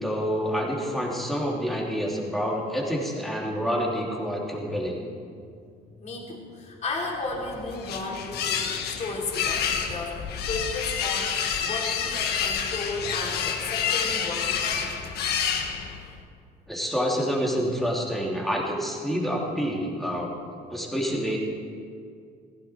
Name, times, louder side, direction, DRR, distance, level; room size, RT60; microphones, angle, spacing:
voice 1, 0.0-5.0 16.7-20.3 20.7-21.4, equal, ahead, -3 dB, 3.0 m, -28 dB
voice 2, 6.0-10.2 10.5-14.9, left 3 dB, 40° left, -2 dB, 3.3 m, -34 dB
sound 1, 7.3-16.2, left 7 dB, 70° left, 1.4 m, -29 dB
16.5 x 15.0 x 4.6 m, 2.2 s
cardioid pair, 110°, 17 cm